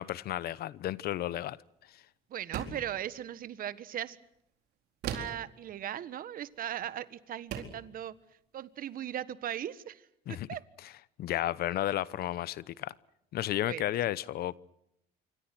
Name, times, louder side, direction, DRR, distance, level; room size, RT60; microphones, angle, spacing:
voice 1, 0.0-1.6 10.3-10.5 11.2-12.9 13.3-14.6, left 13 dB, 65° left, 0.9 m, -32 dB
voice 2, 2.3-4.2 5.1-8.1 8.5-10.1 10.5-10.6 13.7-13.8, right 11 dB, 55° right, 1.4 m, -38 dB
sound 1, 2.5-3.0 5.0-5.5 6.8-7.0 7.5-7.9, right 8 dB, 80° right, 4.2 m, -37 dB
27.0 x 25.0 x 6.1 m
cardioid pair, 110°, 17 cm